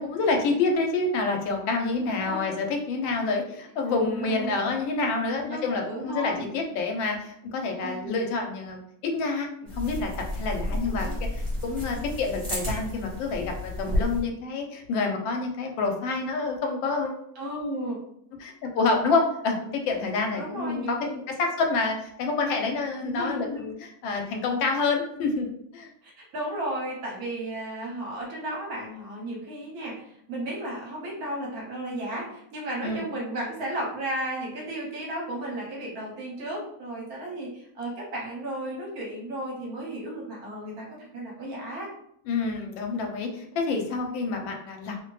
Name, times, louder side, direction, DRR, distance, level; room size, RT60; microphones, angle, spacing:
voice 1, 0.0-9.5 9.7-17.2 18.4-21.1 21.4-25.5 25.7-25.9 32.8-33.0 42.3-45.0, left 3 dB, 85° left, 3 dB, 1.3 m, -28 dB
voice 2, 2.2-2.5 4.0-4.6 5.5-6.5 7.8-8.3 10.9-11.2 17.3-18.0 20.3-21.2 23.2-23.6 26.0-41.9, right 1 dB, 60° right, -4 dB, 1.2 m, -34 dB
sound 1, 9.7-14.2, left 1 dB, 30° right, 0.9 m, -31 dB
3.0 x 2.1 x 3.0 m, 0.72 s
omnidirectional pair, 2.0 m